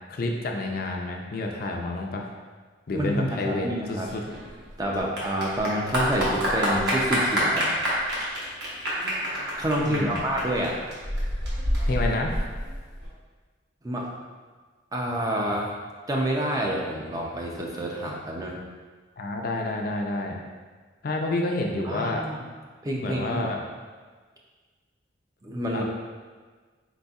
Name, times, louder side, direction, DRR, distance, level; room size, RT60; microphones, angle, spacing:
voice 1, 0.1-2.3 2.9-4.2 9.8-10.2 11.9-12.3 19.2-20.4 21.0-22.2 23.0-23.6 25.7-25.8, left 2 dB, 50° left, 1 dB, 0.4 m, -29 dB
voice 2, 2.9-4.1 4.8-7.7 9.6-10.8 13.8-14.1 14.9-15.7 16.1-18.6 21.8-22.4 22.8-23.5 25.4-25.8, equal, 20° right, -2 dB, 0.4 m, -28 dB
Clapping / Applause, 4.1-13.1, equal, 55° right, 1.1 m, -28 dB
4.2 x 4.0 x 2.3 m, 1.5 s
head